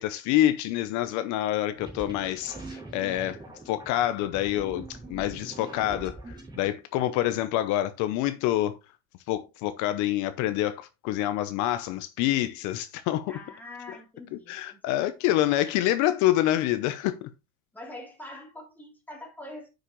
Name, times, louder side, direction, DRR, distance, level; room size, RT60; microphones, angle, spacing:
voice 1, 0.0-3.4 3.7-4.8 5.1-8.8 9.3-13.3 14.5-17.3, left 13 dB, 60° left, 0.8 m, -27 dB
sound 1, 1.7-6.7, right 2 dB, 15° right, 3.1 m, -43 dB
voice 2, 13.3-14.8 17.7-19.7, left 1 dB, 5° left, 3.3 m, -44 dB
9.7 x 6.5 x 3.1 m
cardioid pair, 155°, 32 cm